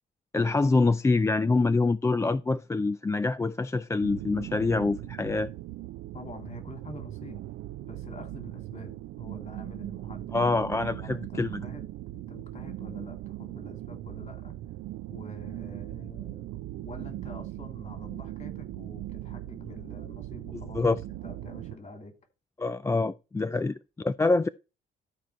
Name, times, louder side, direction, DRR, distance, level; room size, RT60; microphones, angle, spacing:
voice 1, 0.3-5.5 10.3-11.6 20.7-21.0 22.6-24.5, left 3 dB, 15° left, 0.3 m, -25 dB
sound 1, 4.0-21.8, right 15 dB, 85° right, 0.5 m, -39 dB
voice 2, 6.1-7.4 7.8-10.2 11.0-14.5 15.1-16.5 16.8-22.1 23.4-23.6, left 2 dB, 35° left, 2.9 m, -46 dB
13.0 x 4.5 x 4.4 m
cardioid pair, 90°, 20 cm